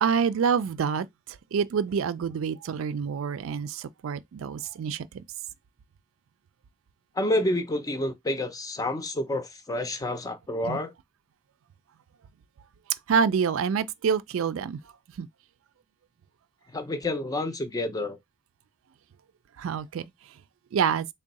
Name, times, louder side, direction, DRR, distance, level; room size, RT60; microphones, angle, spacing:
voice 1, 0.0-5.2 10.6-10.8 13.1-14.8 15.2-15.3 19.6-20.1 20.7-21.1, right 6 dB, 75° right, 0.3 m, -27 dB
voice 2, 7.2-10.9 16.7-18.2, left 1 dB, 15° left, 0.5 m, -29 dB
3.6 x 2.1 x 4.0 m
head